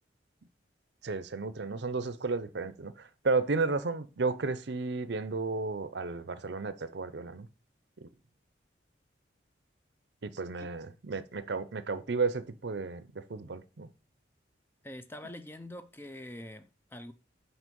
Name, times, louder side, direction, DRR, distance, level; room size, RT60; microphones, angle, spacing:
voice 1, 1.0-7.5 8.0-8.1 10.2-13.9, right 4 dB, 65° right, 0.6 m, -33 dB
voice 2, 14.8-17.1, left 1 dB, 10° left, 0.4 m, -45 dB
6.2 x 5.1 x 5.3 m
head